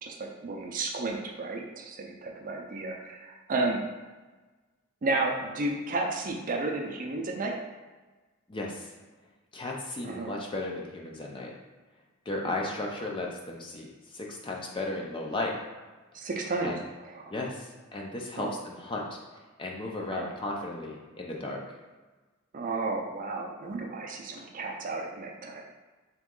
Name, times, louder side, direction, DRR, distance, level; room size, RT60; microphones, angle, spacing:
voice 1, 0.0-3.8 5.0-7.6 10.0-10.3 12.4-12.7 16.1-16.7 17.1-17.3 18.4-18.5 20.1-20.3 22.5-25.6, right 2 dB, 40° right, 1 dB, 0.5 m, -32 dB
voice 2, 8.5-8.9 9.5-11.5 12.3-15.5 16.6-16.8 17.3-19.0 19.6-21.6, left 2 dB, 25° left, -1 dB, 0.5 m, -35 dB
3.5 x 3.0 x 3.7 m, 1.3 s
head